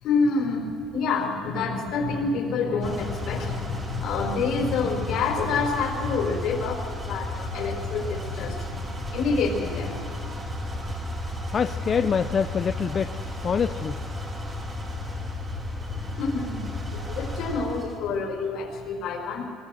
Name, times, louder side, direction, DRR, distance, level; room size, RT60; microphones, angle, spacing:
voice 1, 0.0-11.0 16.0-19.5, left 4 dB, 65° left, 2 dB, 4.9 m, -28 dB
sound 1, 2.8-17.9, left 1 dB, 25° right, 4.0 m, -33 dB
voice 2, 11.5-13.1 13.4-14.0, left 6 dB, 35° left, 9 dB, 0.6 m, -25 dB
23.5 x 21.0 x 7.7 m, 2.4 s
cardioid pair, 135°, 0 cm